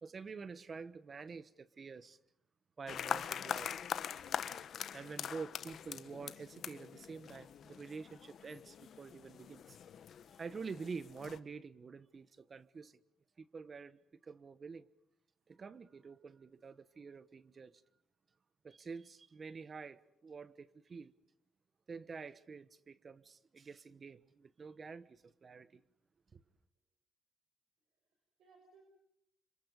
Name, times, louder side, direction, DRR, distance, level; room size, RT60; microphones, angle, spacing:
voice 1, 0.0-2.2 2.8-3.7 4.9-9.8 10.4-13.0 13.4-14.9 15.5-17.7 18.6-21.1 21.9-25.8 26.3-26.4, right 5 dB, 40° right, 1.2 m, -48 dB
sound 1, 2.9-11.4, left 8 dB, 65° left, 1.2 m, -43 dB
voice 2, 28.0-28.8, right 4 dB, 75° right, 6.2 m, -66 dB
30.0 x 26.5 x 5.3 m
cardioid pair, 90°, 0 cm